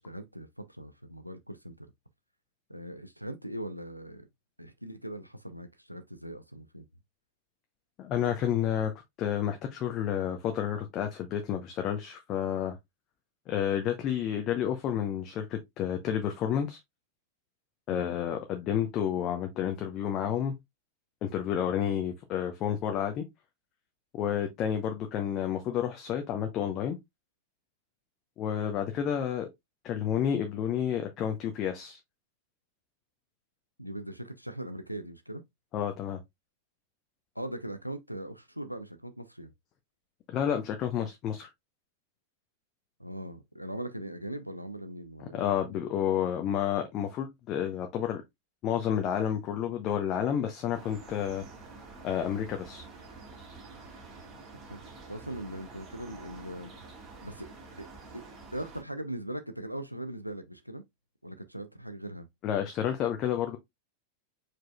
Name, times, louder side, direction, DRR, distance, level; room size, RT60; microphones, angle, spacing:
voice 1, 0.0-1.9 2.7-4.3 4.6-6.8 17.9-18.1 33.8-35.4 37.4-39.5 43.0-45.5 54.7-54.8 55.1-56.7 57.2-57.9 58.1-58.2 58.5-60.8 61.2-62.3, right 1 dB, 90° right, 0.5 m, -40 dB
voice 2, 8.0-8.9 9.2-12.8 13.5-16.8 17.9-20.5 21.2-23.3 24.2-27.0 28.4-29.5 29.8-32.0 35.7-36.2 40.3-41.5 45.2-48.2 48.6-51.4 52.0-52.9 62.4-63.6, left 9 dB, 35° left, 0.7 m, -30 dB
sound 1, 50.7-58.8, right 3 dB, 35° right, 2.2 m, -48 dB
4.8 x 4.6 x 2.3 m
figure-of-eight pair, 90°, 0 cm